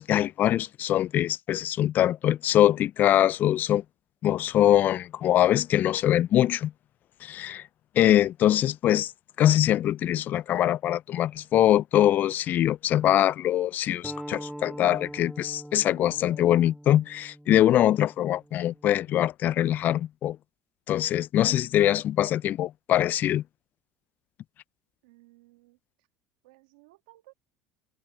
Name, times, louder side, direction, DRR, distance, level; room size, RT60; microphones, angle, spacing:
voice 1, 0.0-3.8 4.2-6.7 7.2-7.6 8.0-9.1 9.4-20.4 20.9-23.4, left 12 dB, 50° left, 0.3 m, -23 dB
sound 1, 14.0-19.2, equal, 5° right, 2.4 m, -43 dB
voice 2, 25.0-25.8 26.4-27.3, right 20 dB, 90° right, 1.9 m, -57 dB
supercardioid pair, 100°, 4 cm